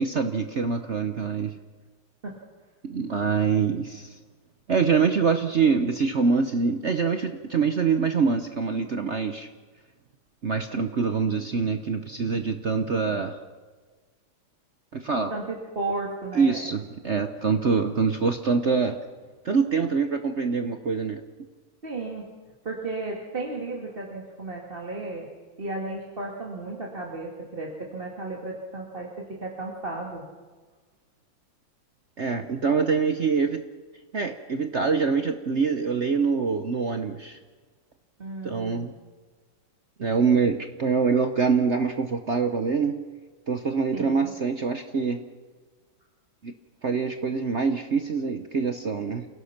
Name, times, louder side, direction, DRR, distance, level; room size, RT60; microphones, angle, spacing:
voice 1, 0.0-1.5 2.8-4.1 4.7-9.5 10.4-13.4 14.9-15.3 16.4-19.0 19.4-21.2 32.2-33.6 34.1-37.4 38.4-38.9 40.0-42.9 43.5-45.2 46.4-46.5 46.8-49.3, right 5 dB, 50° right, 7 dB, 0.9 m, -25 dB
voice 2, 15.3-16.7 21.8-22.2 22.6-25.3 25.6-30.2 38.2-38.9 43.9-44.3, right 2 dB, 30° right, -1 dB, 2.2 m, -34 dB
28.5 x 17.0 x 5.9 m, 1.4 s
omnidirectional pair, 2.2 m